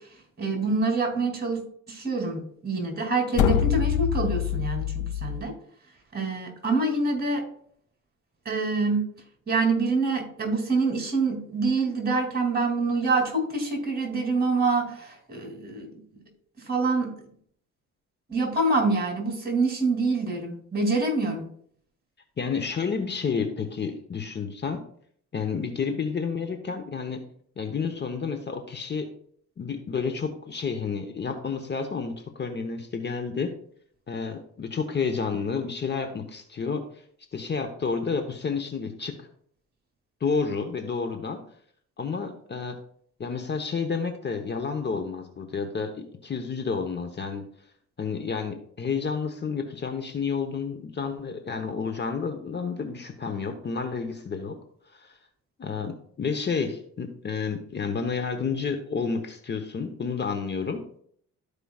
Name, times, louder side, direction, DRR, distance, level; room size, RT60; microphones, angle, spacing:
voice 1, 0.4-1.6 1.9-5.5 6.1-7.4 8.4-9.1 9.5-16.0 16.7-17.1 18.3-21.5, right 3 dB, 30° right, 2 dB, 2.9 m, -26 dB
sound 1, 3.3-5.4, left 10 dB, 80° left, 0.6 m, -25 dB
voice 2, 22.4-24.8 25.3-27.2 27.6-29.1 29.6-33.5 34.1-37.0 37.3-39.3 40.2-41.4 42.0-42.8 43.2-47.4 48.0-54.5 54.9-55.2 55.6-60.8, left 5 dB, 35° left, 6 dB, 1.0 m, -30 dB
13.0 x 4.9 x 2.4 m, 0.62 s
cardioid pair, 90°, 30 cm